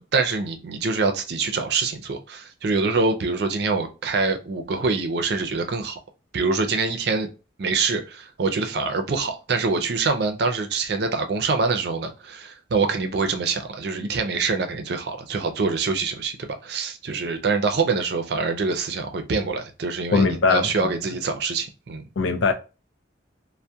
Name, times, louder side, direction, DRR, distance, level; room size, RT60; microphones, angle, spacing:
voice 1, 0.0-6.0 6.3-7.3 7.6-22.0, right 4 dB, 55° right, 0.4 m, -25 dB
voice 2, 20.1-20.9 22.2-22.5, left 4 dB, 80° left, 0.5 m, -21 dB
2.2 x 2.0 x 2.7 m
head